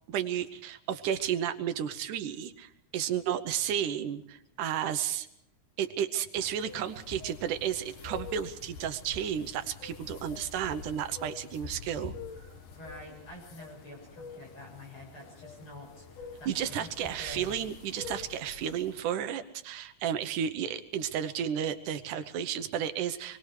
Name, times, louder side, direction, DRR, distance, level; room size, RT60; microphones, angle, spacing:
voice 1, 0.1-5.3 5.8-12.1 16.5-23.4, right 9 dB, 90° right, 10 dB, 2.5 m, -32 dB
sound 1, 6.4-19.0, left 5 dB, 80° left, 3.1 m, -46 dB
voice 2, 12.7-17.6, left 1 dB, 40° left, -1 dB, 8.2 m, -47 dB
26.0 x 21.0 x 4.9 m, 0.74 s
omnidirectional pair, 3.5 m